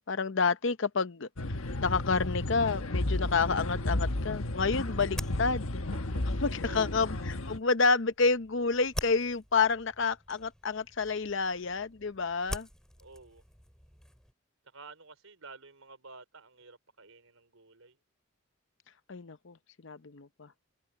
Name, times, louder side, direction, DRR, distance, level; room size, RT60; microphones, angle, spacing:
voice 1, 0.0-5.8 6.4-12.7 19.1-19.6 19.8-20.5, left 4 dB, 60° left, 0.7 m, -29 dB
sound 1, 1.4-7.6, left 1 dB, 80° left, 1.3 m, -33 dB
sound 2, 4.0-14.3, equal, 5° left, 6.6 m, -46 dB
voice 2, 6.1-7.0 13.0-13.4 14.6-18.0, right 3 dB, 80° right, 4.8 m, -51 dB
head